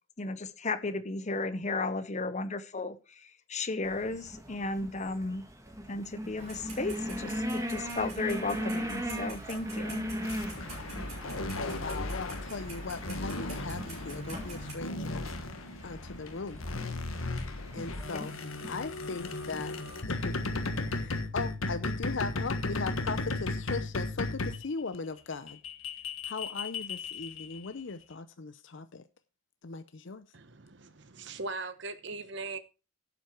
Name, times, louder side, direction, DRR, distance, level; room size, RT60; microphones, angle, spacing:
voice 1, 0.2-3.0 3.5-5.4 5.9-10.1, left 3 dB, 35° left, 0.8 m, -34 dB
sound 1, 3.8-21.0, equal, 15° right, 1.7 m, -40 dB
Clock, 6.4-14.7, right 1 dB, 35° right, 5.9 m, -46 dB
sound 2, 10.2-24.6 25.3-27.7, left 2 dB, 90° left, 1.6 m, -35 dB
voice 2, 11.7-15.2 15.8-16.6 17.7-19.7 20.1-20.4 20.8-25.6 26.2-29.0 29.6-30.2, left 4 dB, 60° left, 0.6 m, -38 dB
voice 3, 30.3-32.6, right 3 dB, 60° right, 1.1 m, -40 dB
11.5 x 7.9 x 4.5 m
head